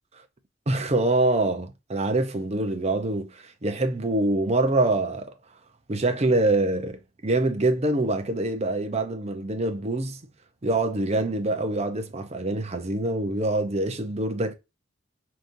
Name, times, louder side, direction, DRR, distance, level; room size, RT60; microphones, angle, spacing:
voice 1, 0.7-5.3 5.9-10.2 10.6-14.5, right 2 dB, 35° right, 0.7 m, -25 dB
5.1 x 2.9 x 2.6 m
head